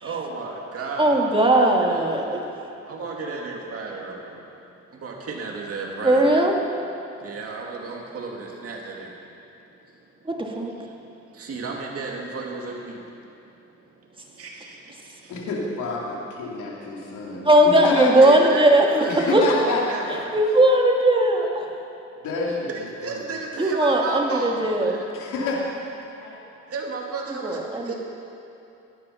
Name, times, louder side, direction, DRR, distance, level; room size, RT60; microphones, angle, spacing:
voice 1, 0.0-2.4 2.9-4.2 5.0-6.4 7.2-9.1 11.4-13.0 14.4-14.7 18.2-20.4 22.7-25.1 26.7-27.9, right 4 dB, 50° right, -1 dB, 2.3 m, -33 dB
voice 2, 1.0-2.4 6.0-6.5 10.3-10.7 17.4-19.5 20.3-21.7 23.6-25.0 27.4-27.9, right 1 dB, 15° right, 1 dB, 2.0 m, -18 dB
voice 3, 15.3-18.1 19.1-19.8 22.2-22.7 23.0-23.2 25.1-25.6 26.2-26.4, left 3 dB, 90° left, -3 dB, 2.7 m, -28 dB
16.5 x 10.5 x 5.7 m, 2.7 s
cardioid pair, 90°, 30 cm